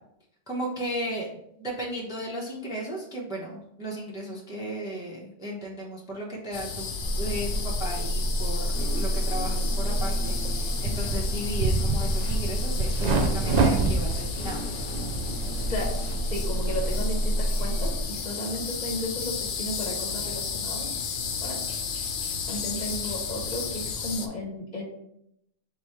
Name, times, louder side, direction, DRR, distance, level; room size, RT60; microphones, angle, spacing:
voice 1, 0.5-6.9 7.2-14.9, right 1 dB, 5° right, -3 dB, 0.7 m, -35 dB
sound 1, 6.5-24.3, left 6 dB, 85° left, 0.9 m, -34 dB
sound 2, 7.0-18.0, right 1 dB, 45° right, 1.3 m, -29 dB
sound 3, 9.9-16.1, right 3 dB, 60° right, 0.4 m, -28 dB
voice 2, 16.2-20.9 21.4-21.7 22.5-24.8, left 1 dB, 40° left, -2 dB, 0.9 m, -34 dB
3.6 x 3.1 x 4.5 m, 0.77 s
omnidirectional pair, 1.2 m